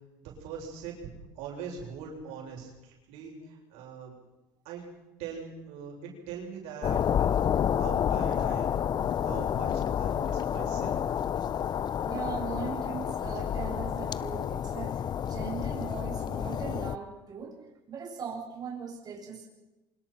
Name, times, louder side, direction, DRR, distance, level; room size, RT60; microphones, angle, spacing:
voice 1, 0.2-1.0 1.4-4.2 4.6-4.9 5.2-11.0, right 6 dB, 75° right, 0 dB, 7.8 m, -42 dB
sound 1, 6.8-17.0, left 9 dB, 40° left, 0.9 m, -29 dB
voice 2, 12.0-17.6 17.9-19.5, right 6 dB, 35° right, -1 dB, 7.8 m, -39 dB
27.0 x 25.5 x 6.1 m, 1.0 s
supercardioid pair, 105°, 11 cm